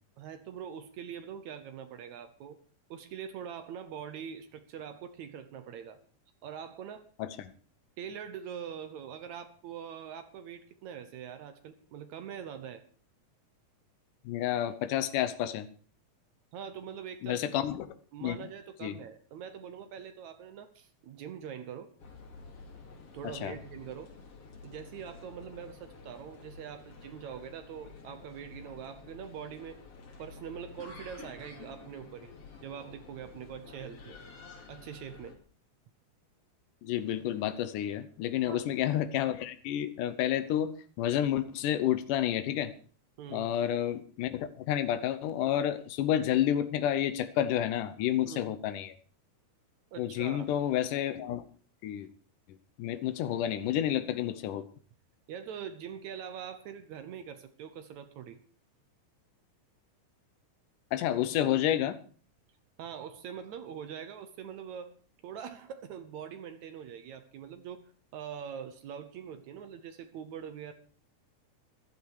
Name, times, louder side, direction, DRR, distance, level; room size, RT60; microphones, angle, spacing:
voice 1, 0.2-2.6 2.9-6.0 6.4-7.1 8.0-12.8 16.5-17.6 18.1-21.9 23.1-24.1 24.6-29.8 30.2-32.3 32.6-34.2 34.7-35.4 38.5-38.7 43.2-43.5 48.3-48.5 49.9-50.5 55.3-58.4 62.8-64.9 65.2-67.8 68.1-70.7, right 8 dB, 70° right, 9 dB, 2.2 m, -43 dB
voice 2, 14.3-15.7 17.2-18.0 18.2-18.4 18.8-19.0 23.2-23.6 36.8-40.7 41.0-42.7 43.3-49.0 50.0-51.4 51.8-52.1 52.8-54.6 60.9-62.0, left 11 dB, 90° left, 11 dB, 2.4 m, -30 dB
sound 1, 22.0-35.4, left 4 dB, 50° left, 3.1 m, -50 dB
14.5 x 12.0 x 4.8 m, 0.40 s
omnidirectional pair, 3.6 m